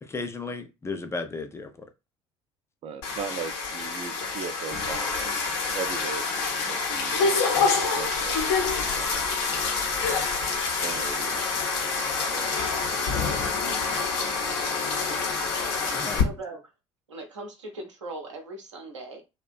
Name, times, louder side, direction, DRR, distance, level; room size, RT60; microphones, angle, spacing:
voice 1, 0.0-1.9 15.9-16.2, left 3 dB, 20° left, 0.4 m, -34 dB
voice 2, 2.8-5.3 5.7-7.4 7.9-8.6 8.9-9.4 10.1-10.3 10.6-13.3 15.8-16.0, right 6 dB, 40° right, 0.5 m, -39 dB
sound 1, 3.0-16.2, left 4 dB, 65° left, 0.7 m, -27 dB
voice 3, 16.1-16.6 17.1-19.2, right 2 dB, 80° right, 0.7 m, -39 dB
2.4 x 2.1 x 2.4 m
figure-of-eight pair, 55°, 15 cm